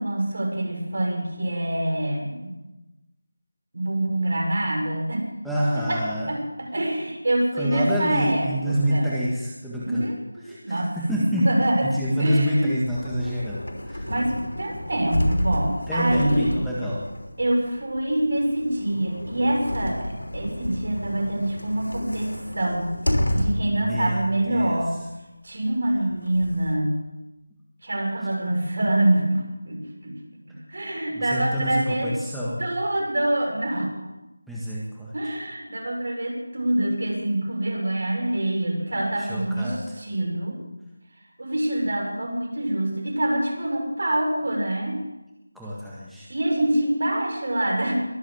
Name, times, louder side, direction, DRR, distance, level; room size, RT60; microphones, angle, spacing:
voice 1, 0.0-2.5 3.7-5.2 5.8-6.0 6.3-9.1 9.8-10.9 11.3-12.7 14.0-16.6 17.4-22.9 23.3-24.9 25.4-27.0 27.8-30.2 30.7-32.1 32.6-33.9 35.1-40.6 41.4-45.0 46.3-47.9, right 1 dB, 60° right, 2 dB, 5.8 m, -25 dB
voice 2, 5.4-6.3 7.6-10.1 10.4-11.5 11.9-14.1 15.9-17.0 23.8-24.8 31.1-32.6 34.5-35.3 39.2-40.0 45.5-46.3, equal, ahead, -10 dB, 1.6 m, -27 dB
sound 1, 12.9-23.8 24.3-24.4 25.9-26.7, left 1 dB, 85° left, 3.3 m, -30 dB
22.5 x 8.2 x 7.9 m, 1.0 s
figure-of-eight pair, 170°, 0 cm